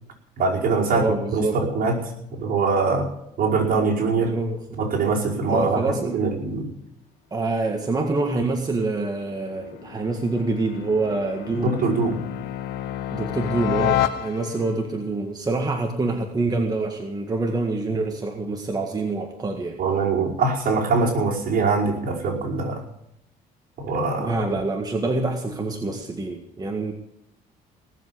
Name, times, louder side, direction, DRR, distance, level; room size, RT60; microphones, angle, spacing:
voice 1, 0.4-3.1 3.4-4.3 4.7-6.7 11.5-12.2 19.8-22.8 23.8-24.3, right 4 dB, 55° right, -2 dB, 5.2 m, -23 dB
voice 2, 0.9-1.6 4.2-4.8 5.5-6.2 7.3-11.8 13.1-19.8 24.2-26.9, right 3 dB, 20° right, 3 dB, 1.8 m, -26 dB
sound 1, 8.4-14.8, left 12 dB, 80° left, 1.3 m, -30 dB
18.5 x 7.5 x 9.7 m, 0.78 s
cardioid pair, 110°, 17 cm